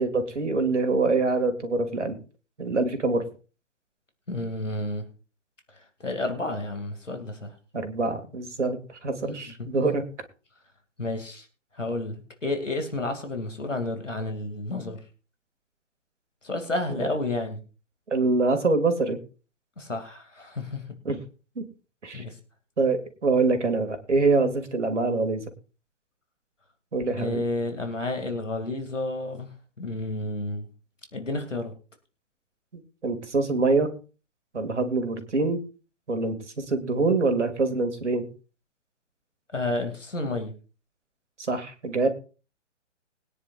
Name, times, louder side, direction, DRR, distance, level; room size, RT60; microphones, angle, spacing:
voice 1, 0.0-2.2 2.6-3.2 7.7-10.0 16.9-17.1 18.1-19.2 21.1-21.2 21.6-21.7 22.0-22.2 22.8-25.4 26.9-27.4 32.7-33.9 34.5-35.6 36.1-38.3 41.5-42.1, right 3 dB, 70° right, 8 dB, 2.4 m, -25 dB
voice 2, 4.3-5.0 5.7-7.5 9.6-9.7 11.0-11.5 11.7-15.0 16.4-17.6 19.8-20.8 22.1-22.4 27.2-29.5 29.8-30.7 31.1-31.7 39.5-40.5, left 2 dB, 80° left, 5 dB, 2.5 m, -31 dB
21.5 x 9.7 x 2.5 m, 0.35 s
figure-of-eight pair, 125°, 37 cm